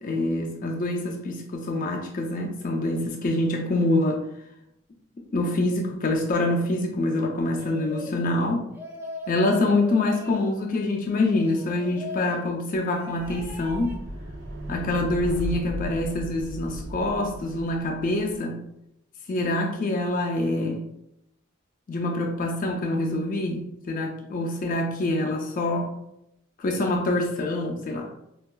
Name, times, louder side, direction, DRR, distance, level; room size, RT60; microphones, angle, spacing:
voice 1, 0.0-4.2 5.3-8.7 9.3-14.0 14.7-18.6 19.3-20.8 21.9-25.9 26.6-28.1, left 2 dB, 45° left, 1 dB, 0.4 m, -25 dB
sound 1, 7.6-8.2 8.7-10.5 11.1-12.4 12.9-14.0, left 2 dB, 10° right, 0.5 m, -40 dB
sound 2, 13.1-18.4, right 1 dB, 65° right, 0.5 m, -36 dB
4.4 x 2.3 x 2.2 m, 0.81 s
head